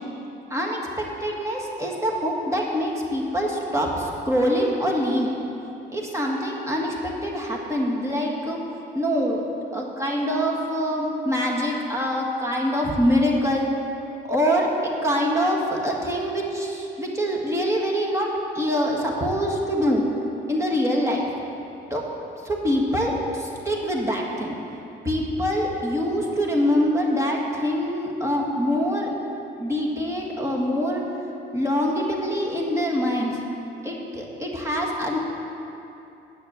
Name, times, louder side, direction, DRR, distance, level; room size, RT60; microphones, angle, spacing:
voice 1, 0.5-5.3 5.9-8.6 8.9-9.4 9.7-13.7 14.2-20.0 20.5-21.2 21.9-22.0 22.4-24.5 25.0-29.1 29.6-31.0 31.5-33.4 33.8-35.2, equal, 15° right, -2 dB, 1.8 m, -24 dB
8.8 x 6.5 x 7.8 m, 2.8 s
cardioid pair, 90°, 20 cm